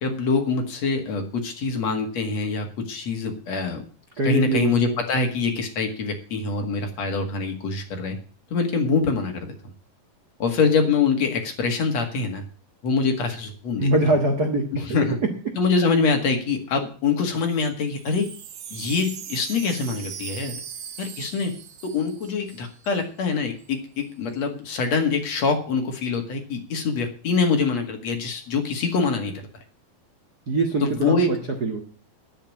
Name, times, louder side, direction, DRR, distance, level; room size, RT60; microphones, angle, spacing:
voice 1, 0.0-3.8 4.2-8.2 8.5-9.5 10.4-12.4 12.8-13.9 14.7-15.2 15.6-18.3 18.7-20.6 21.0-21.5 21.8-29.5 30.8-31.3, left 4 dB, 50° left, 4 dB, 2.8 m, -24 dB
voice 2, 4.2-5.0 13.8-14.9 30.5-31.8, right 2 dB, 60° right, 4 dB, 1.0 m, -23 dB
Wind chime, 17.8-23.0 23.3-23.4 23.6-24.0, right 8 dB, 80° right, 1.2 m, -40 dB
10.0 x 8.8 x 8.4 m, 0.40 s
omnidirectional pair, 4.3 m